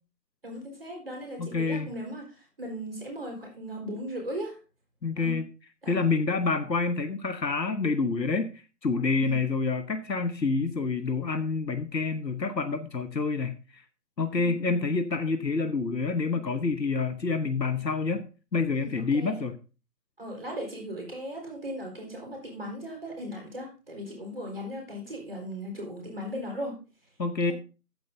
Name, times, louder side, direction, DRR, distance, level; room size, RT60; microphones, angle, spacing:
voice 1, 0.4-4.6 5.2-5.4 5.8-6.1 9.1-9.4 14.3-14.8 16.3-16.4 18.7-19.4 20.2-26.8, equal, 35° right, 4.3 m, -38 dB
voice 2, 1.4-1.9 5.0-5.5 5.9-8.5 8.8-13.8 14.2-18.2 18.5-19.5 27.2-27.5, left 4 dB, 85° left, 1.2 m, -27 dB
14.5 x 9.4 x 2.7 m
figure-of-eight pair, 175°, 49 cm